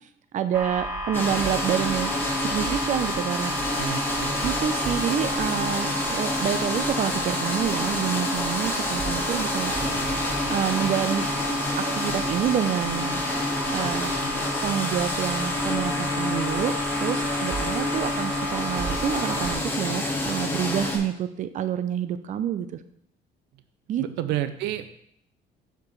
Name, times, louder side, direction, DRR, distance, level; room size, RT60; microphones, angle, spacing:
voice 1, 0.3-2.1 2.4-3.5 4.4-9.7 10.5-11.3 11.8-13.2 13.6-14.1 14.6-22.7 23.9-24.0, right 9 dB, 50° right, 11 dB, 0.5 m, -28 dB
sound 1, 0.5-19.5, equal, 15° right, 1.5 m, -32 dB
sound 2, 1.1-21.0, left 1 dB, 15° left, 1.9 m, -28 dB
voice 2, 3.8-4.4 24.0-24.9, right 13 dB, 90° right, 12 dB, 0.5 m, -30 dB
7.3 x 6.7 x 3.2 m, 0.69 s
cardioid pair, 110°, 17 cm